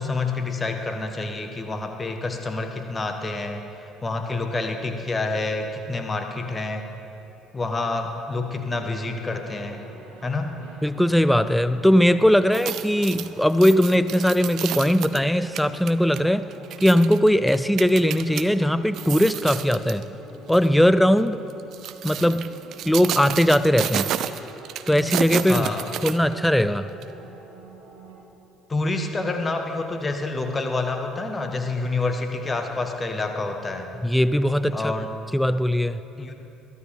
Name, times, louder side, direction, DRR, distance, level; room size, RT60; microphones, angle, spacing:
voice 1, 0.0-6.9 7.5-9.8 10.2-10.6 25.4-25.8 28.7-33.9 34.7-35.1 36.2-36.3, left 3 dB, 25° left, 5 dB, 1.5 m, -28 dB
sound 1, 8.5-28.2, right 3 dB, 70° right, 2.5 m, -47 dB
voice 2, 10.8-16.5 16.8-20.1 20.5-21.4 22.0-22.5 22.9-24.1 24.9-25.7 26.0-26.9 34.0-34.9 35.3-36.0, equal, 5° left, 14 dB, 0.5 m, -19 dB
sound 2, 12.4-18.4 18.9-20.0 20.5-20.7 21.5-26.6 27.0-27.1, right 11 dB, 50° right, 0.6 m, -31 dB
22.5 x 14.5 x 3.7 m, 3.0 s
figure-of-eight pair, 55°, 0 cm